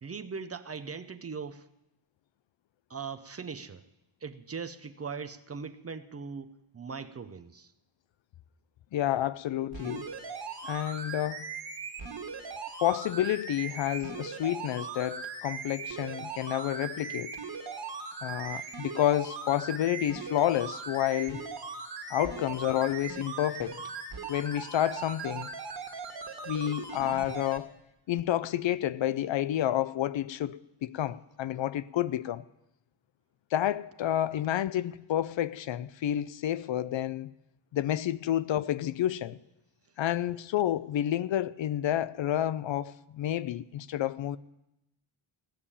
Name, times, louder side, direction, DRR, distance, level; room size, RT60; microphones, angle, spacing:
voice 1, 0.0-1.7 2.9-3.8 4.2-7.7, right 5 dB, 30° right, 0.5 m, -40 dB
voice 2, 8.9-10.0 10.6-11.5 12.8-17.3 18.2-21.4 22.1-23.8 24.3-25.5 26.5-27.7 28.1-32.4 33.5-37.3 37.7-39.4 40.0-44.4, left 12 dB, 65° left, 0.5 m, -29 dB
sound 1, 9.7-27.6 28.2-28.3, right 5 dB, 50° right, 1.7 m, -39 dB
16.5 x 7.3 x 9.8 m
wide cardioid pair, 165°, 49 cm